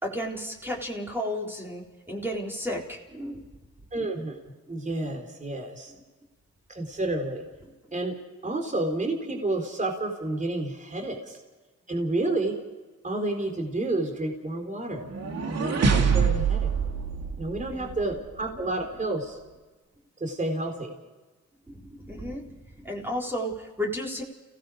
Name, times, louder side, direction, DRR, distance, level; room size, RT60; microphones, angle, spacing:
voice 1, 0.0-3.4 17.5-17.9 21.7-22.6 22.8-24.2, equal, 5° right, -2 dB, 4.0 m, -33 dB
voice 2, 3.9-4.4 4.7-5.9 6.7-7.4 7.9-8.2 8.4-11.4 11.9-12.6 13.0-15.1 15.4-16.7 17.4-19.4 20.2-20.9, right 2 dB, 25° right, 3 dB, 4.1 m, -30 dB
sound 1, 15.0-18.1, right 6 dB, 55° right, 2.7 m, -25 dB
29.5 x 17.5 x 5.1 m, 1.2 s
cardioid pair, 90°, 30 cm